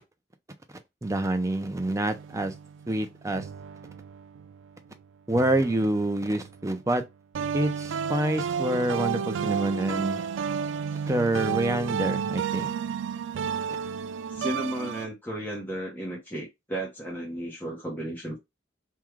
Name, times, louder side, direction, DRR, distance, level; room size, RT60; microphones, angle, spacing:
voice 1, 1.0-2.5 2.9-3.4 5.3-7.0 7.5-10.2 11.1-12.7, right 1 dB, 15° right, 0.5 m, -27 dB
sound 1, 2.1-4.6 5.3-6.9 7.3-15.1, right 7 dB, 90° right, 0.3 m, -32 dB
voice 2, 14.3-18.4, right 1 dB, 10° left, 0.8 m, -34 dB
3.6 x 2.3 x 3.1 m
head